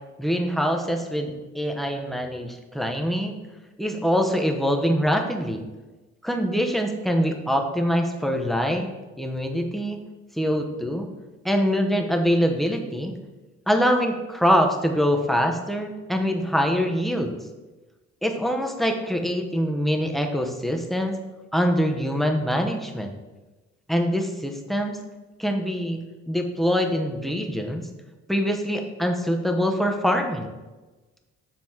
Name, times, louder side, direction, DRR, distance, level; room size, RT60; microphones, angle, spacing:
voice 1, 0.2-3.3 3.8-5.6 6.2-8.9 9.2-10.0 10.4-11.1 11.4-13.1 13.7-17.3 18.2-21.2 21.5-23.1 23.9-25.0 25.4-26.0 26.3-27.8 28.3-30.5, equal, ahead, 4 dB, 0.9 m, -24 dB
7.5 x 4.2 x 4.6 m, 1.2 s
cardioid pair, 90°, 30 cm